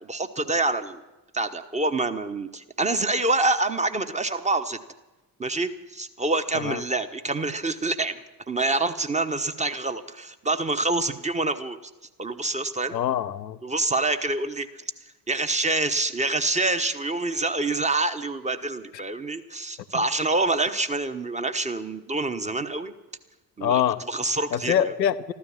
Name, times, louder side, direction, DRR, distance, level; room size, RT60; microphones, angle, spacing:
voice 1, 0.0-1.0 1.3-4.8 5.4-8.2 8.5-11.8 12.2-13.0 13.6-14.8 15.3-22.9 23.6-24.9, right 2 dB, 15° right, 10 dB, 1.1 m, -26 dB
voice 2, 12.9-13.6 23.6-24.0 24.5-25.3, left 10 dB, 85° left, 13 dB, 0.6 m, -24 dB
13.5 x 13.0 x 7.3 m, 1.1 s
figure-of-eight pair, 45°, 50 cm